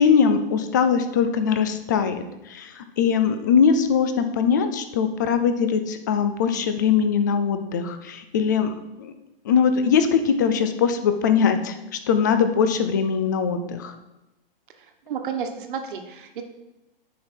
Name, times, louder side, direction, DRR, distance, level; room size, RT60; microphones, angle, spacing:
voice 1, 0.0-9.1 9.5-13.9, left 6 dB, 20° left, 9 dB, 0.3 m, -21 dB
voice 2, 15.1-16.4, right 7 dB, 60° right, 5 dB, 1.3 m, -31 dB
9.4 x 5.2 x 4.4 m, 0.98 s
hypercardioid pair, 155°, 29 cm